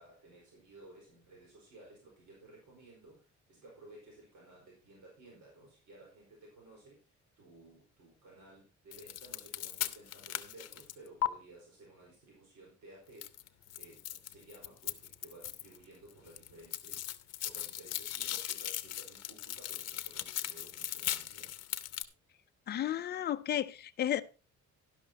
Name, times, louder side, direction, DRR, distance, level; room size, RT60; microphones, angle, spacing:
voice 1, 0.0-21.5, right 2 dB, 90° right, 4.7 m, -56 dB
sound 1, 8.9-11.3 13.2-15.8 16.1-22.0, left 12 dB, 60° left, 0.8 m, -38 dB
voice 2, 22.7-24.2, left 11 dB, 35° left, 0.5 m, -33 dB
11.5 x 11.5 x 2.9 m
cardioid pair, 180°, 29 cm